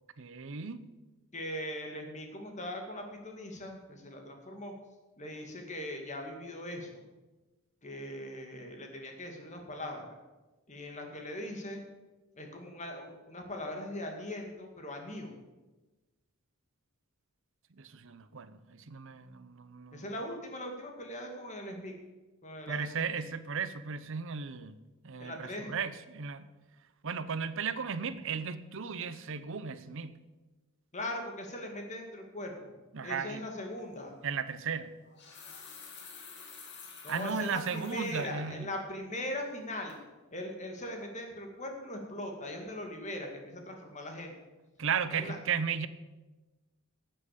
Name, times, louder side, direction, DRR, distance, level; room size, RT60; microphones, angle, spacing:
voice 1, 0.2-0.8 17.8-20.1 22.7-24.8 25.0-26.5 27.0-30.2 32.9-33.4 34.2-34.9 37.1-38.7 44.8-45.9, right 6 dB, 60° right, 0.7 m, -35 dB
voice 2, 1.3-4.7 5.2-7.0 7.8-10.2 10.7-11.8 12.3-15.3 19.9-21.9 22.4-23.2 25.2-25.7 30.9-32.7 33.0-34.2 37.0-40.0 40.3-44.3 45.1-45.4, left 1 dB, 35° left, 2.1 m, -40 dB
sound 1, 33.8-33.9 34.9-38.3 38.7-38.8 39.3-39.6 39.9-40.0, left 5 dB, 50° left, 2.3 m, -50 dB
11.5 x 7.7 x 8.4 m
head